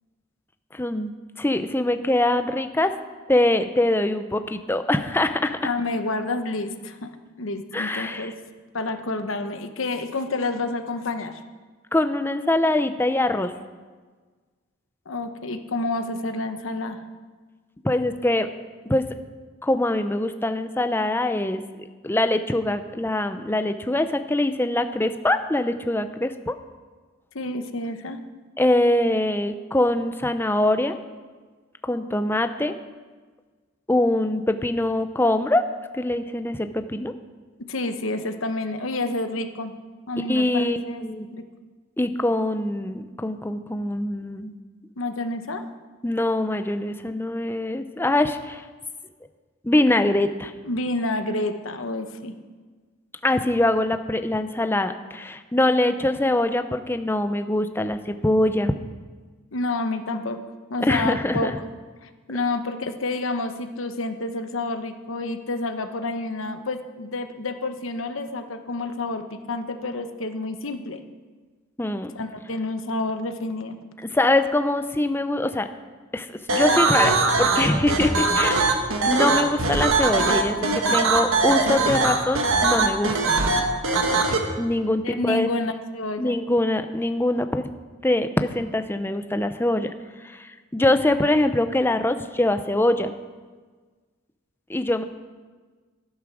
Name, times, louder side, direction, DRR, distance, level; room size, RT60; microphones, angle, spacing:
voice 1, 0.7-1.1 1.4-2.9 3.3-5.6 7.7-8.3 11.9-13.5 17.8-18.5 18.9-19.1 19.6-26.5 28.6-31.0 31.8-32.7 33.9-35.6 35.9-37.1 40.3-41.3 42.0-44.5 46.0-48.6 49.6-50.5 53.2-58.7 60.8-61.6 71.8-72.1 74.0-75.7 76.1-78.8 79.1-83.2 84.6-85.5 86.2-87.7 88.0-89.9 90.2-93.1 94.7-95.0, left 1 dB, 10° left, 8 dB, 0.5 m, -23 dB
voice 2, 5.6-7.1 7.4-8.3 8.7-11.4 15.1-17.0 27.3-28.2 37.7-39.7 40.1-41.0 41.3-41.4 45.0-45.6 50.6-52.3 59.5-60.4 60.7-61.5 62.0-71.0 72.1-73.8 85.0-86.4, left 2 dB, 70° left, 8 dB, 1.0 m, -29 dB
sound 1, 76.5-84.4, right 3 dB, 85° right, 1.6 m, -21 dB
12.0 x 9.6 x 6.2 m, 1.4 s
head